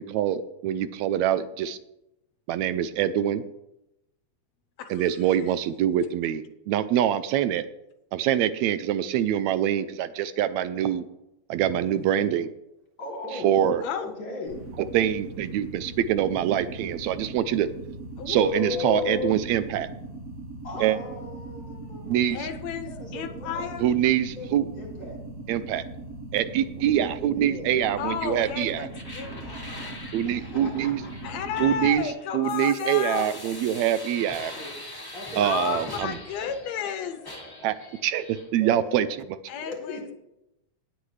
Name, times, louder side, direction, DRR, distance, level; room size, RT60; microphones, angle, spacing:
voice 1, 0.0-1.8 2.5-3.4 4.9-7.6 8.1-11.0 11.5-12.5 13.4-13.8 14.9-17.7 18.3-19.9 20.8-21.0 22.1-22.4 23.8-24.7 25.5-25.8 26.3-28.9 30.1-31.0 31.6-32.1 32.3-34.5 35.4-36.2 37.6-37.8 38.0-39.1, right 10 dB, 80° right, 13 dB, 1.8 m, -24 dB
voice 2, 4.8-5.1 5.4-5.5 13.8-14.1 18.2-19.4 22.3-23.9 28.0-29.6 31.2-33.3 35.4-37.2 39.5-40.1, left 8 dB, 75° left, 8 dB, 1.8 m, -32 dB
voice 3, 13.0-14.7 18.4-19.2 20.6-22.5 22.9-23.9 24.3-25.2 27.3-27.7 30.2-31.6 34.3-34.7 35.1-35.9 36.4-37.9 38.6-39.0 39.6-40.1, left 2 dB, 40° left, -2 dB, 3.5 m, -39 dB
sound 1, 14.5-31.9, right 2 dB, 55° right, 3.2 m, -40 dB
sound 2, 28.9-36.9 37.2-38.5, left 1 dB, 15° left, 0.8 m, -42 dB
19.0 x 8.0 x 3.2 m, 0.88 s
omnidirectional pair, 3.3 m